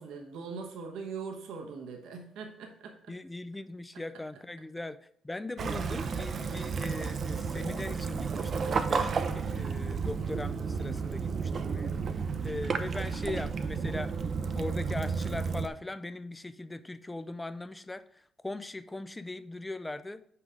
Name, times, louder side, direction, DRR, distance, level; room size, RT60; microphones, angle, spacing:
voice 1, 0.0-3.1, right 5 dB, 85° right, 3 dB, 1.1 m, -41 dB
voice 2, 3.1-5.0 5.2-12.0 12.4-14.1 14.5-20.2, left 2 dB, 15° left, 13 dB, 0.5 m, -39 dB
Waves surf / Splash splatter / Trickle dribble, 5.6-15.7, right 5 dB, 50° right, 0.6 m, -32 dB
5.9 x 4.8 x 5.0 m, 0.66 s
cardioid pair, 90°, 0 cm